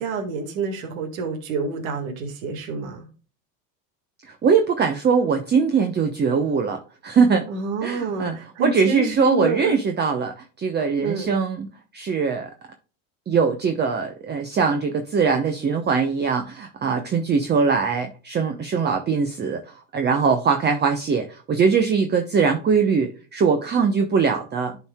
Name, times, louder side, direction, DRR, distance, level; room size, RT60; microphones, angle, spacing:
voice 1, 0.0-3.1 7.5-9.7 11.0-11.4, right 3 dB, 85° right, 3 dB, 1.9 m, -28 dB
voice 2, 4.2-7.5 7.8-11.7 11.9-12.5 13.3-24.8, right 5 dB, 25° right, 6 dB, 0.9 m, -21 dB
11.0 x 4.7 x 2.2 m, 0.37 s
supercardioid pair, 115°, 39 cm